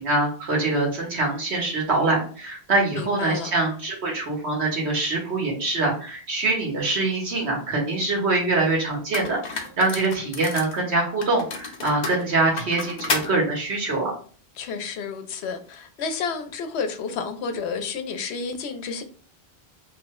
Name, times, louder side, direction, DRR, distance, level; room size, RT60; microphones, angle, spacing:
voice 1, 0.0-14.1, right 2 dB, 85° right, 1.5 m, -24 dB
voice 2, 2.9-3.5 9.5-9.6 14.6-19.0, left 5 dB, 85° left, 0.9 m, -30 dB
sound 1, 8.5-8.6 9.1-10.8 11.2-13.3, left 4 dB, 50° left, 0.7 m, -31 dB
3.0 x 2.1 x 3.5 m
omnidirectional pair, 1.1 m